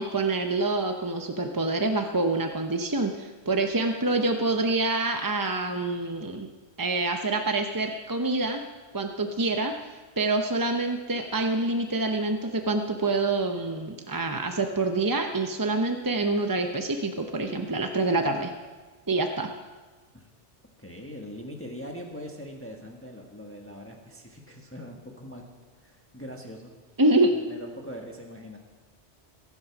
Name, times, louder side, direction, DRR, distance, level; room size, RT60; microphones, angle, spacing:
voice 1, 0.0-6.5 6.8-8.6 8.9-18.5 19.1-19.5 27.0-27.3, right 2 dB, 20° right, 4 dB, 0.6 m, -26 dB
voice 2, 20.8-25.4 25.8-26.7 27.3-28.6, equal, 10° left, 1 dB, 1.4 m, -42 dB
23.0 x 8.5 x 6.0 m, 1.3 s
omnidirectional pair, 1.2 m